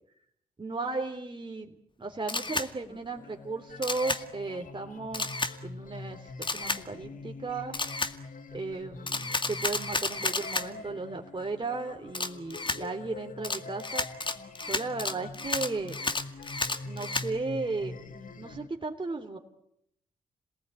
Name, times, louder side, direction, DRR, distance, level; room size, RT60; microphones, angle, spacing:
voice 1, 0.6-7.8 8.5-14.1 14.7-16.0 16.9-18.0 18.4-19.4, right 3 dB, 30° right, 3 dB, 3.3 m, -35 dB
Camera, 2.3-2.7 3.8-4.2 5.1-5.5 6.4-6.8 7.7-8.1 9.1-10.7 12.1-12.8 13.4-17.3, left 3 dB, 30° left, 2.1 m, -31 dB
sound 1, 2.8-18.7, left 3 dB, 55° left, 2.3 m, -45 dB
27.5 x 19.0 x 9.2 m, 0.76 s
hypercardioid pair, 45°, 17 cm